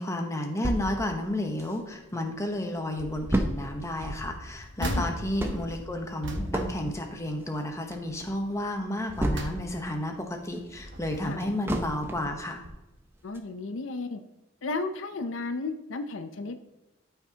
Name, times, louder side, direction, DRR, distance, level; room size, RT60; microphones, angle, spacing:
voice 1, 0.0-12.6, left 1 dB, 15° left, 3 dB, 0.9 m, -32 dB
sound 1, 0.6-2.2 2.6-2.7 2.8-9.9 10.2-12.4 12.8-12.9 13.3-13.4, right 1 dB, 10° right, 0.7 m, -32 dB
sound 2, 3.0-3.5 4.0-7.7 8.0-8.3 8.8-10.1 10.6-11.6 12.2-12.4 12.6-12.7, equal, 65° right, 1.3 m, -38 dB
voice 2, 13.2-14.2 14.6-16.6, left 3 dB, 80° left, 9 dB, 0.6 m, -33 dB
13.0 x 5.8 x 2.8 m, 1.0 s
head